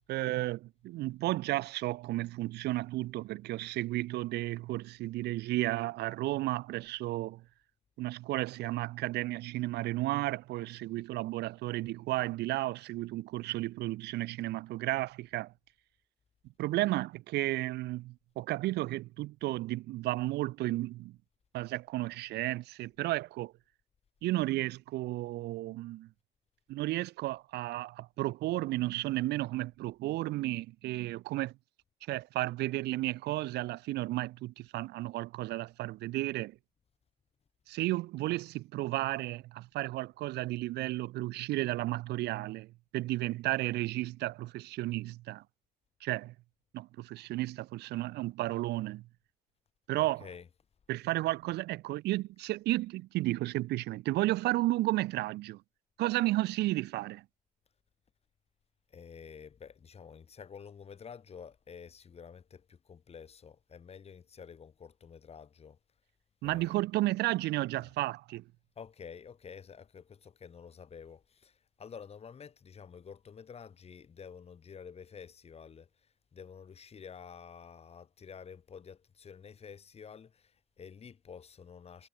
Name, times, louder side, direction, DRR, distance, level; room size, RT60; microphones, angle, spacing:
voice 1, 0.1-7.4 8.0-15.5 16.6-21.2 21.5-23.5 24.2-26.1 26.7-31.5 32.1-36.5 37.7-45.4 46.0-46.3 46.7-49.0 49.9-50.3 50.9-55.6 56.0-57.2 66.4-68.4, right 17 dB, 80° right, 1.1 m, -33 dB
voice 2, 50.0-50.5 58.9-65.8 66.4-66.8 67.8-67.9 68.8-75.9 76.3-82.1, left 6 dB, 35° left, 4.5 m, -49 dB
cardioid pair, 110°, 17 cm